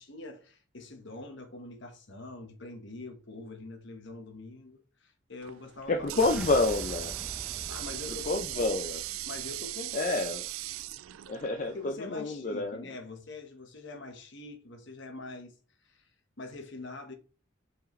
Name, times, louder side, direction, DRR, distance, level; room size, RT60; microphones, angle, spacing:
voice 1, 0.0-6.1 6.6-6.7 7.7-8.8 9.3-10.3 11.6-15.5 15.8-16.1 16.4-17.1, left 2 dB, 60° left, 1.3 m, -44 dB
Water tap faucet, 5.4-11.9, right 17 dB, 85° right, 0.3 m, -39 dB
sound 1, 5.8-10.9, equal, 5° right, 0.6 m, -45 dB
voice 2, 5.9-7.1 8.3-9.0 9.9-10.4 11.3-12.9, left 2 dB, 40° left, 0.5 m, -28 dB
7.5 x 4.9 x 3.1 m
head